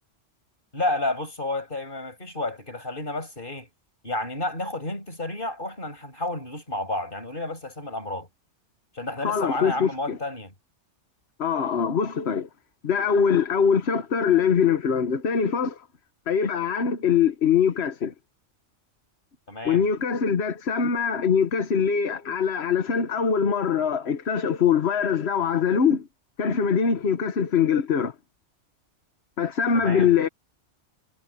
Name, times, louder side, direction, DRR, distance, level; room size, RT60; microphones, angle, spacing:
voice 1, 0.7-3.7 4.0-8.3 8.9-10.5 19.5-19.8 29.7-30.1, left 2 dB, 45° left, 6.7 m, -31 dB
voice 2, 9.2-10.2 11.4-12.5 12.8-15.8 16.3-18.1 19.6-26.1 26.4-28.1 29.4-30.3, left 7 dB, 65° left, 1.4 m, -23 dB
omnidirectional pair, 1.2 m